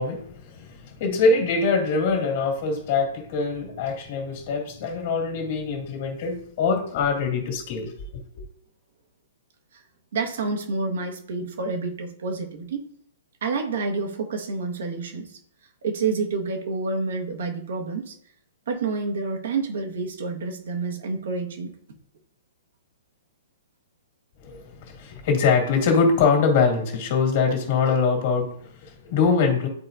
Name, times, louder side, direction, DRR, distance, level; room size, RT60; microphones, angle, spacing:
voice 1, 0.0-8.4 24.4-29.7, left 4 dB, 45° left, 2.1 m, -23 dB
voice 2, 10.1-12.8 13.4-15.4 15.8-18.2 18.7-21.7, right 4 dB, 60° right, 1.3 m, -28 dB
9.8 x 4.4 x 2.6 m
figure-of-eight pair, 115°, 0 cm